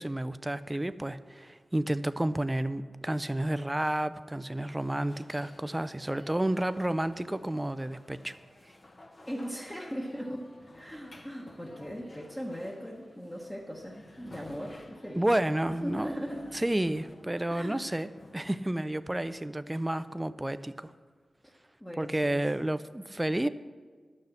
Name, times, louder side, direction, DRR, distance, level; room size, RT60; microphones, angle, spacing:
voice 1, 0.0-8.4 15.2-16.2 16.5-20.9 22.0-23.5, right 1 dB, 15° right, 13 dB, 0.4 m, -31 dB
sound 1, 3.6-20.3, left 2 dB, 40° left, 1.1 m, -54 dB
voice 2, 9.3-15.3 15.8-16.5 17.5-17.8 21.4-21.5 21.8-22.4, equal, 10° left, -3 dB, 1.3 m, -39 dB
11.5 x 6.6 x 7.1 m, 1.5 s
cardioid pair, 70°, 0 cm